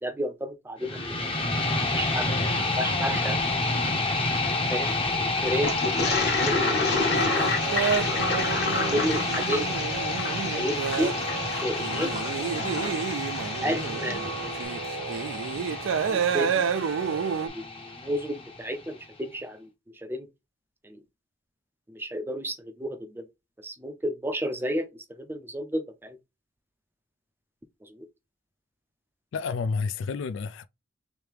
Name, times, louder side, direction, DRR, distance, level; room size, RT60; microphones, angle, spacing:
voice 1, 0.0-1.3 2.0-3.8 4.7-6.5 7.0-8.4 8.9-9.7 10.5-11.2 11.6-12.1 13.6-14.6 16.0-16.7 17.4-20.3 20.8-21.0 21.9-23.3 23.6-26.2 27.8-28.1, equal, 10° right, 0.5 m, -32 dB
sound 1, 0.8-18.8, left 2 dB, 30° left, 0.7 m, -29 dB
Toilet flush, 5.6-14.2, left 3 dB, 55° left, 1.1 m, -30 dB
sound 2, 7.1-17.5, right 7 dB, 85° right, 0.4 m, -30 dB
voice 2, 29.3-30.7, left 5 dB, 75° left, 0.3 m, -30 dB
3.3 x 3.1 x 3.3 m
head